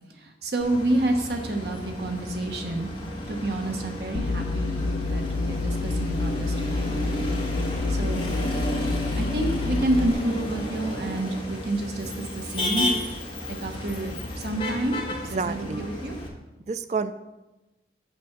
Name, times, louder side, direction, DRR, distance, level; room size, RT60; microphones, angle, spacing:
voice 1, 0.1-2.9 3.3-7.3 7.9-8.4 9.2-12.9 13.5-15.0 15.3-16.2, right 1 dB, 65° right, 3 dB, 1.2 m, -29 dB
Motor vehicle (road), 0.6-16.3, left 1 dB, 30° left, 1.8 m, -33 dB
sound 1, 4.1-10.1, left 3 dB, 80° left, 0.5 m, -28 dB
voice 2, 15.4-15.8 16.7-17.1, right 5 dB, 40° right, 11 dB, 0.4 m, -28 dB
8.1 x 6.0 x 5.9 m, 1.1 s
head